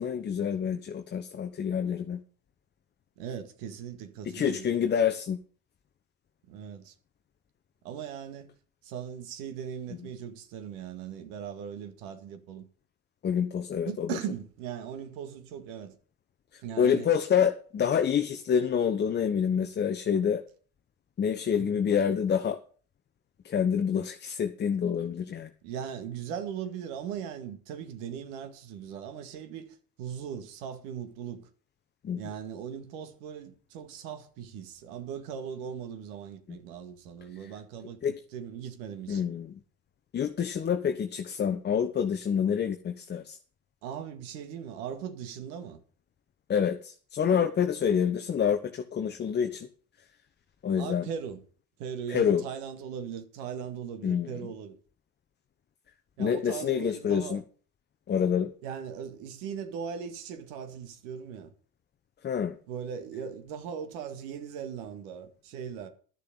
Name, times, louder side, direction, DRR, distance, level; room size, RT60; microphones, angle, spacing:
voice 1, 0.0-2.2 4.2-5.4 13.2-14.1 16.5-20.4 21.2-22.6 23.4-25.5 32.0-32.2 37.4-37.5 38.0-38.2 39.1-39.6 40.1-43.4 46.5-49.7 50.6-51.1 52.1-52.4 54.0-54.4 56.2-57.4 58.1-58.5 62.2-62.6, left 7 dB, 25° left, 0.9 m, -27 dB
voice 2, 3.2-4.7 6.5-6.9 7.8-8.5 8.8-12.6 13.9-15.9 16.6-17.1 21.5-21.8 25.6-31.5 32.2-38.0 38.3-39.2 43.8-45.8 50.8-51.4 51.8-54.8 56.2-57.4 58.6-61.5 62.7-65.9, right 8 dB, 60° right, 2.0 m, -39 dB
12.0 x 6.8 x 6.9 m
figure-of-eight pair, 75°, 45 cm